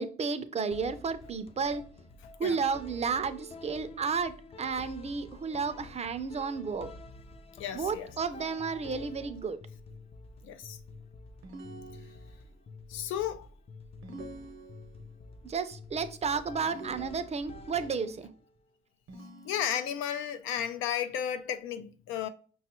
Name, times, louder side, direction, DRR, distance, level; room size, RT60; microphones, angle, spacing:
voice 1, 0.0-1.8 2.4-6.9 7.7-9.6 15.4-18.3, right 5 dB, 35° right, 0.4 m, -32 dB
sound 1, 0.7-18.5, left 2 dB, 30° left, 0.4 m, -49 dB
voice 2, 7.6-8.1 10.4-10.8 12.9-13.5 19.4-22.3, left 9 dB, 85° left, 0.4 m, -33 dB
sound 2, 11.4-12.6 14.0-15.2 16.6-17.7 19.1-20.1, right 2 dB, 75° right, 0.8 m, -47 dB
5.2 x 2.3 x 2.9 m
cardioid pair, 90°, 20 cm